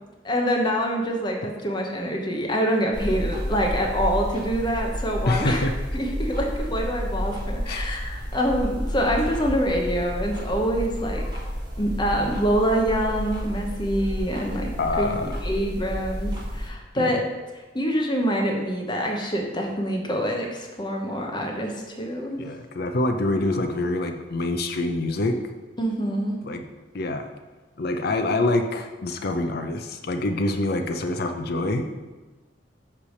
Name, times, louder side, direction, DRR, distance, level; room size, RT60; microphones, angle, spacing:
voice 1, 0.2-5.7 5.9-11.3 11.8-17.2 17.7-22.4 25.8-26.4, equal, 25° left, 1 dB, 0.9 m, -25 dB
sound 1, 2.9-16.7, equal, 25° right, 2.1 m, -31 dB
voice 2, 5.3-5.7 7.7-8.0 14.8-15.4 17.0-17.2 22.4-25.4 26.4-26.6 26.9-27.3 27.8-31.9, left 2 dB, 55° left, 6 dB, 0.6 m, -26 dB
8.3 x 3.4 x 6.4 m, 1.2 s
head